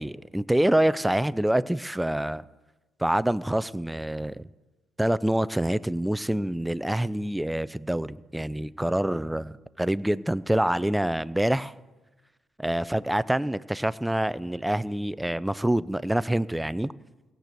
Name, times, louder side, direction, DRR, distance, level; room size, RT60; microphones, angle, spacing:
voice 1, 0.0-2.4 3.0-4.4 5.0-11.7 12.6-16.9, right 1 dB, 5° right, 17 dB, 0.4 m, -26 dB
16.5 x 6.7 x 7.7 m, 1.2 s
supercardioid pair, 65°, 0 cm